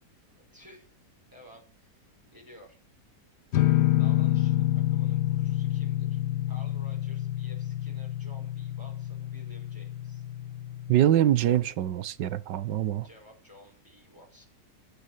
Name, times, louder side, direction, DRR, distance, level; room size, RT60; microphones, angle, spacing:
voice 1, 0.4-0.9 1.3-2.8 4.0-6.2 6.5-10.2 13.0-14.5, equal, 10° right, 5.4 m, -53 dB
sound 1, 3.5-11.1, left 14 dB, 75° left, 1.6 m, -28 dB
voice 2, 10.9-13.1, right 11 dB, 90° right, 1.6 m, -24 dB
14.0 x 12.0 x 6.8 m
omnidirectional pair, 1.8 m